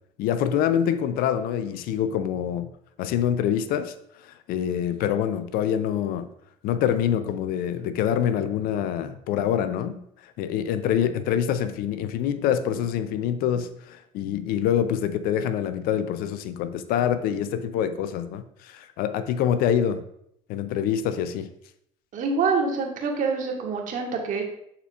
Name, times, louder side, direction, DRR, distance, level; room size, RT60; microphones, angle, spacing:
voice 1, 0.2-2.7 3.0-3.9 4.2-6.3 6.6-10.0 10.4-20.0 20.5-21.5, left 9 dB, 55° left, 0.5 m, -25 dB
voice 2, 22.1-24.5, right 4 dB, 50° right, 1.7 m, -26 dB
11.0 x 4.4 x 2.5 m
hypercardioid pair, 65°, 18 cm